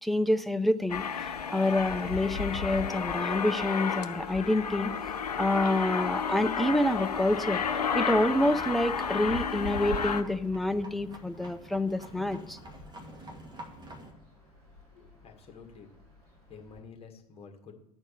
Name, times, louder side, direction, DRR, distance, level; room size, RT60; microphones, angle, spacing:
voice 1, 0.0-4.9 5.4-12.6, left 1 dB, ahead, 10 dB, 0.4 m, -28 dB
Aircraft, 0.9-10.2, left 6 dB, 80° left, 0.5 m, -32 dB
Train, 4.2-16.8, equal, 70° right, 2.7 m, -51 dB
sound 1, 6.8-14.1, right 1 dB, 20° right, 1.7 m, -49 dB
voice 2, 14.9-15.9 16.5-17.8, left 5 dB, 30° left, 2 dB, 1.8 m, -50 dB
11.5 x 4.5 x 6.9 m, 0.75 s
figure-of-eight pair, 70°, 20 cm